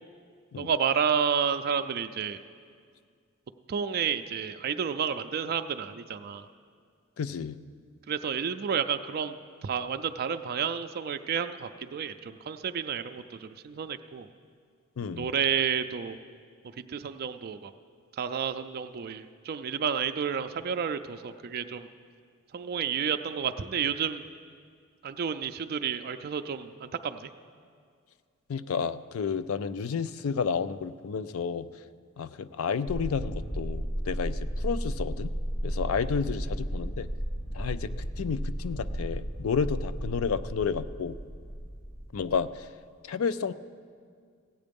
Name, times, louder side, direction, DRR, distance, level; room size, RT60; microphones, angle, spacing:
voice 1, 0.6-2.4 3.7-6.5 8.1-9.4 9.6-14.3 15.1-16.2 16.9-17.7 18.2-21.9 22.5-24.2 25.0-27.3, right 7 dB, 45° right, 9 dB, 0.4 m, -30 dB
voice 2, 7.2-7.6 15.0-15.3 28.5-31.7 32.2-35.3 35.6-37.1 37.5-41.2 42.1-42.6 43.1-43.5, left 6 dB, 80° left, 14 dB, 0.4 m, -31 dB
sound 1, 32.9-42.5, equal, 35° left, 1.5 m, -34 dB
16.0 x 8.4 x 5.2 m, 2.1 s
head